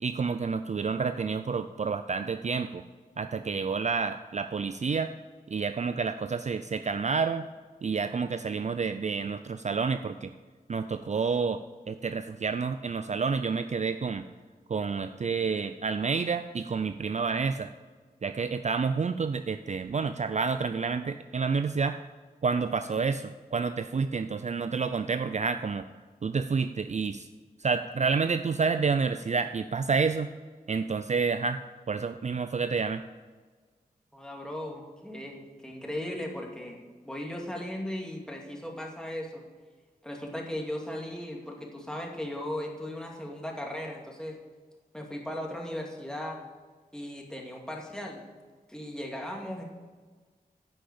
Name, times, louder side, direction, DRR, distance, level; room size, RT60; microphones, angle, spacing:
voice 1, 0.0-2.8 3.2-5.1 5.5-7.5 7.8-10.3 10.7-11.6 11.9-14.2 14.7-17.7 18.2-22.0 22.4-25.8 26.2-27.3 27.6-30.3 30.7-31.6 31.9-33.0, right 5 dB, 45° right, 10 dB, 0.4 m, -29 dB
voice 2, 34.1-36.8 37.0-39.4 40.0-44.4 44.9-46.4 46.9-48.2 48.7-49.6, left 1 dB, 5° left, -1 dB, 2.4 m, -37 dB
10.5 x 6.0 x 8.4 m, 1.4 s
wide cardioid pair, 60°, 16 cm